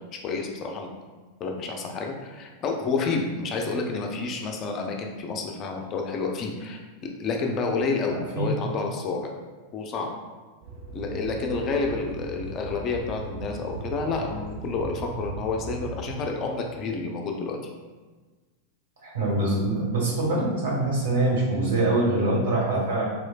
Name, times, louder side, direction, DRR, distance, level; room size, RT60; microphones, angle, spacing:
voice 1, 0.2-0.9 1.4-9.3 9.7-10.1 10.9-17.6, left 4 dB, 30° left, 2 dB, 0.4 m, -29 dB
voice 2, 8.1-8.5 19.0-23.1, right 2 dB, 60° right, -4 dB, 1.3 m, -24 dB
sound 1, 10.6-16.2, right 2 dB, 45° right, 0.6 m, -38 dB
4.2 x 3.1 x 2.3 m, 1.3 s
figure-of-eight pair, 90°, 0 cm